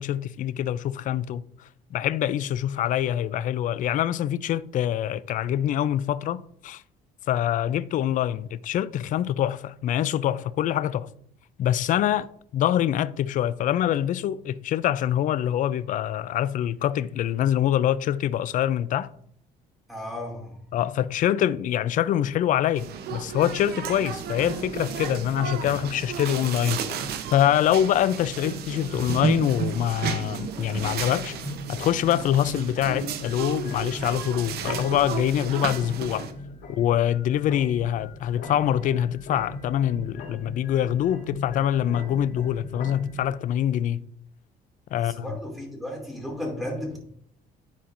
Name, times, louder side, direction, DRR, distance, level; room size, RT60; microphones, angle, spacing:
voice 1, 0.0-1.4 1.9-6.8 7.3-11.1 11.6-12.3 12.5-19.1 20.7-26.8 27.3-31.4 31.7-36.3 36.7-44.0 44.9-45.3, left 11 dB, 50° left, 0.4 m, -25 dB
voice 2, 19.9-20.6 45.0-47.0, left 1 dB, ahead, 2.7 m, -34 dB
sound 1, 22.8-36.3, right 8 dB, 70° right, 0.7 m, -33 dB
sound 2, 24.2-43.3, left 1 dB, 80° left, 2.9 m, -40 dB
10.0 x 4.4 x 2.5 m
cardioid pair, 110°, 17 cm